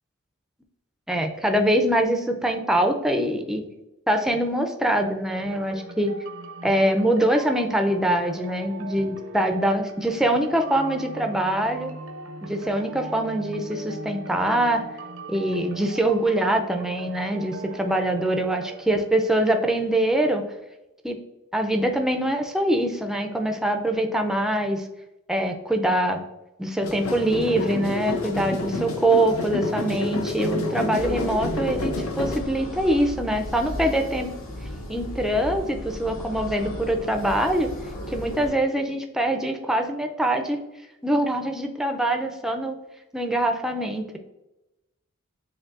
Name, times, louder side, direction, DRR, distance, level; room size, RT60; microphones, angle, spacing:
voice 1, 1.1-3.6 4.1-6.1 6.6-11.9 12.4-14.8 15.3-20.4 21.0-21.2 21.5-24.9 25.3-26.2 26.6-34.3 34.9-37.7 38.1-40.6 41.0-42.8 43.1-44.2, right 1 dB, ahead, 4 dB, 0.3 m, -24 dB
sound 1, 5.4-19.9, right 3 dB, 70° right, 0.5 m, -40 dB
sound 2, 26.8-32.4, left 2 dB, 85° left, 0.6 m, -29 dB
sound 3, 31.0-38.5, left 1 dB, 70° left, 1.1 m, -35 dB
7.0 x 2.6 x 2.4 m, 0.96 s
head